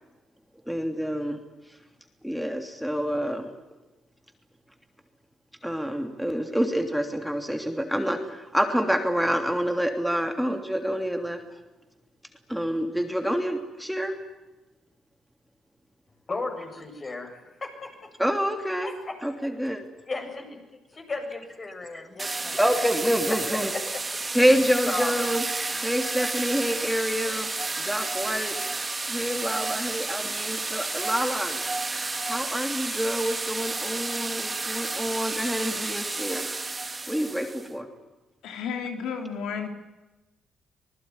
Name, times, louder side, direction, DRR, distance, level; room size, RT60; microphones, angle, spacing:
voice 1, 0.7-1.4 1.7-1.8 2.2-3.5 5.6-11.4 12.5-14.1 18.2-18.9 19.2-19.8 21.9-22.0 22.5-23.7 24.3-27.5 27.8-28.6 29.1-31.6 32.2-36.5 37.1-37.9, equal, ahead, 5 dB, 3.2 m, -27 dB
voice 2, 16.3-17.3 17.6-17.9 18.8-19.1 19.4-19.5 20.1-20.5 20.9-22.7 23.3-23.4 23.7-24.0 24.9-25.1, left 3 dB, 30° left, 4 dB, 7.6 m, -34 dB
sound 1, 22.2-37.7, right 3 dB, 20° right, 2.7 m, -31 dB
voice 3, 38.4-39.7, left 6 dB, 85° left, 5 dB, 3.2 m, -32 dB
26.0 x 20.5 x 9.8 m, 1.1 s
cardioid pair, 90°, 0 cm